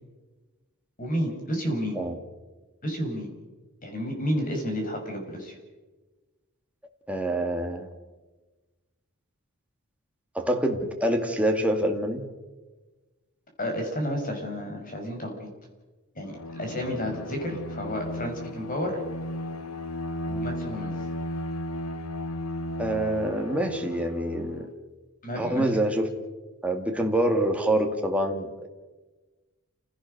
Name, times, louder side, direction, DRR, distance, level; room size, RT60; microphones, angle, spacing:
voice 1, 1.0-2.0 2.8-3.3 3.8-5.6 13.6-15.5 16.2-16.3 16.6-19.0 20.2-20.9 25.2-25.7, equal, 40° left, 3 dB, 5.4 m, -31 dB
voice 2, 7.1-7.9 10.3-12.3 22.8-24.7 25.4-26.2 26.6-28.7, right 1 dB, 5° right, 2 dB, 2.1 m, -26 dB
Bowed string instrument, 16.2-24.7, left 1 dB, 80° left, 1.0 m, -35 dB
29.0 x 16.5 x 6.6 m, 1.2 s
head